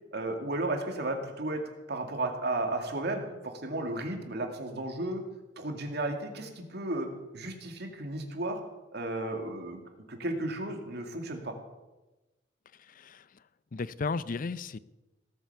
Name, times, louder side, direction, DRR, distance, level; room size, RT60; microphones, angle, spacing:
voice 1, 0.1-1.6 1.9-5.2 5.6-7.1 7.3-8.6 8.9-9.8 10.1-11.6, right 2 dB, 60° right, 4 dB, 2.2 m, -33 dB
voice 2, 12.9-13.2 13.7-14.8, left 4 dB, 45° left, 17 dB, 0.5 m, -34 dB
17.5 x 8.9 x 6.8 m, 1.1 s
head